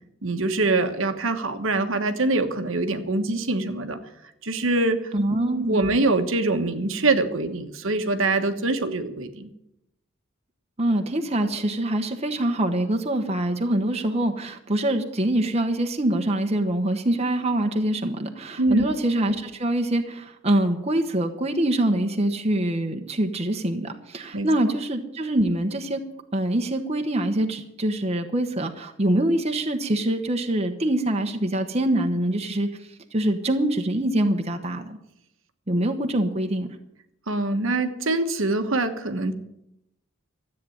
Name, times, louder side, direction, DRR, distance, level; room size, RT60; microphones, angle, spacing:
voice 1, 0.2-4.0 4.4-5.1 5.7-9.5 18.6-18.8 24.3-24.5 37.3-39.3, right 2 dB, 70° right, 7 dB, 1.3 m, -24 dB
voice 2, 5.1-5.9 10.8-26.0 26.3-32.7 33.1-35.0 35.7-36.7, right 1 dB, 30° right, 5 dB, 1.1 m, -24 dB
13.5 x 8.6 x 9.2 m, 0.81 s
head